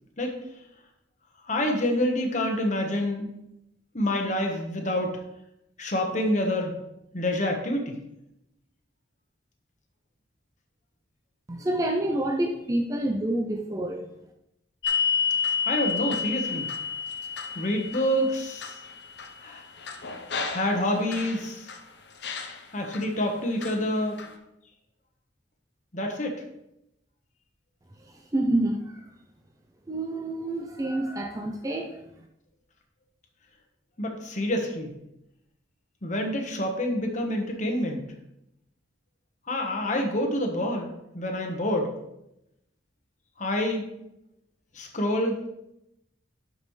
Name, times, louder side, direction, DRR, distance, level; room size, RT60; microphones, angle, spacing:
voice 1, 1.4-3.3 3.9-5.2 5.8-6.8 7.1-8.0 15.6-16.7 17.5-18.8 19.4-19.6 20.5-21.7 22.7-24.2 25.9-26.4 34.0-34.9 36.0-38.1 39.5-41.9 43.4-43.9 44.7-45.5, left 1 dB, 40° left, 3 dB, 1.2 m, -27 dB
voice 2, 11.5-14.1 28.0-29.1 29.9-32.0, right 1 dB, 20° right, 2 dB, 0.5 m, -28 dB
sound 1, 14.8-21.8 22.2-23.0 23.6-24.3, left 5 dB, 60° left, 0.8 m, -31 dB
11.5 x 5.3 x 3.2 m, 0.85 s
head